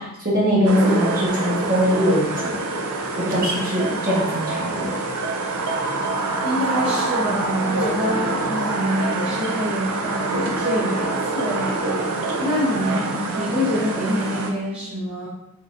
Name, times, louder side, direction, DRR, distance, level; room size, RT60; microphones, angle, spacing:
voice 1, 0.0-2.5 3.2-4.9, equal, 40° right, -6 dB, 1.3 m, -21 dB
sound 1, 0.7-14.5, right 2 dB, 85° right, 0.5 m, -25 dB
voice 2, 6.4-11.9 12.4-13.1 13.4-15.3, equal, 25° right, -10 dB, 0.9 m, -26 dB
3.9 x 3.8 x 2.6 m, 0.88 s
head